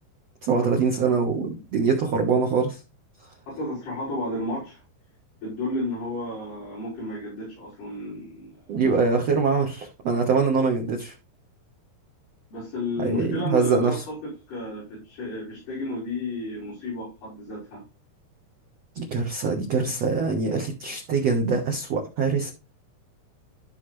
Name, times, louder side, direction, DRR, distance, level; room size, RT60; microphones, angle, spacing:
voice 1, 0.4-2.8 8.7-11.1 13.0-14.0 18.9-22.5, right 5 dB, 85° right, 1 dB, 1.4 m, -23 dB
voice 2, 3.5-4.8 5.4-8.5 12.5-14.0 14.2-17.8, left 2 dB, 50° left, -9 dB, 7.1 m, -32 dB
13.5 x 5.7 x 3.3 m, 0.29 s
omnidirectional pair, 5.2 m